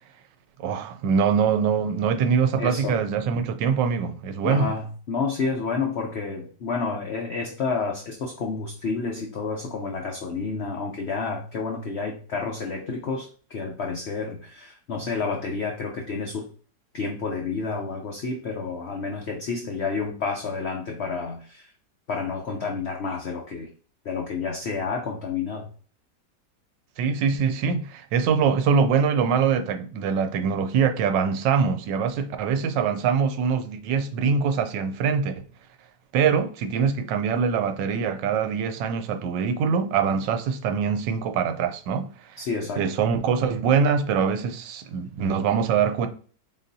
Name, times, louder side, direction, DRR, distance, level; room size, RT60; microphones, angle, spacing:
voice 1, 0.6-4.7 27.0-35.4 36.1-42.4 42.8-46.1, right 6 dB, 85° right, 1.3 m, -23 dB
voice 2, 2.6-3.0 4.4-16.5 16.9-21.7 22.1-23.7 24.0-25.7 42.4-42.8, left 4 dB, 80° left, 0.5 m, -30 dB
4.0 x 3.9 x 2.7 m
omnidirectional pair, 1.9 m